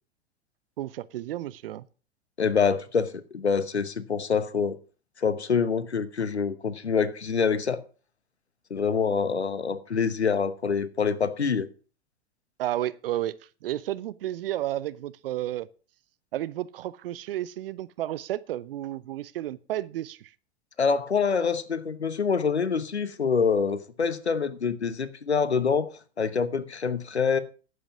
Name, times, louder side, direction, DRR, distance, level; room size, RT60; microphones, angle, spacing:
voice 1, 0.8-1.9 12.6-13.4 13.6-15.7 16.3-20.3, right 13 dB, 60° right, 0.6 m, -32 dB
voice 2, 2.4-4.8 5.2-7.8 8.7-11.7 20.8-27.4, left 5 dB, 85° left, 1.1 m, -26 dB
11.0 x 8.2 x 6.0 m
figure-of-eight pair, 95°, 32 cm